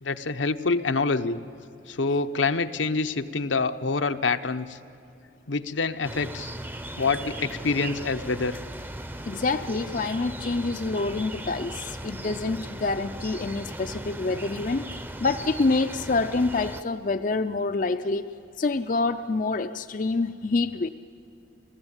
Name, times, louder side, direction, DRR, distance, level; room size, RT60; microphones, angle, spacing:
voice 1, 0.0-1.4 1.9-4.8 5.5-6.5 7.0-8.6, left 4 dB, 80° left, 9 dB, 0.9 m, -26 dB
sound 1, 6.0-16.8, right 1 dB, 10° right, 0.7 m, -37 dB
voice 2, 9.3-14.8 15.2-18.2 18.6-20.9, left 3 dB, 45° left, 9 dB, 0.5 m, -27 dB
30.0 x 15.0 x 8.9 m, 2.6 s
head